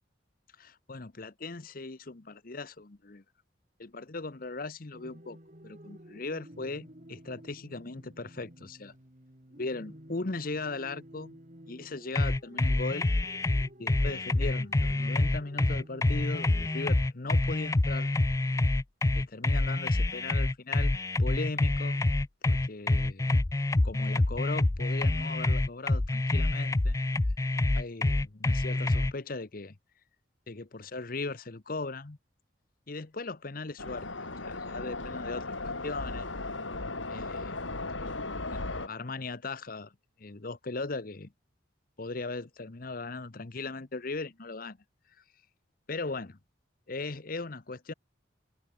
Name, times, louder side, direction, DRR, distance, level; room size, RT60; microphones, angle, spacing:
voice 1, 0.6-3.2 3.8-5.4 5.6-8.9 9.6-11.4 11.7-13.1 13.8-18.1 19.1-20.9 21.2-22.0 22.4-23.4 23.8-27.0 27.7-29.8 30.5-32.2 32.9-35.4 35.8-36.3 37.1-37.6 37.9-39.9 40.2-41.3 42.0-44.8 45.9-46.4 46.9-47.9, left 3 dB, 50° left, 1.0 m, -38 dB
sound 1, 4.9-16.9, equal, 40° right, 4.4 m, -52 dB
sound 2, 12.1-29.1, left 2 dB, 15° left, 0.4 m, -27 dB
sound 3, 33.8-38.9, left 2 dB, 85° left, 4.1 m, -36 dB
open air
head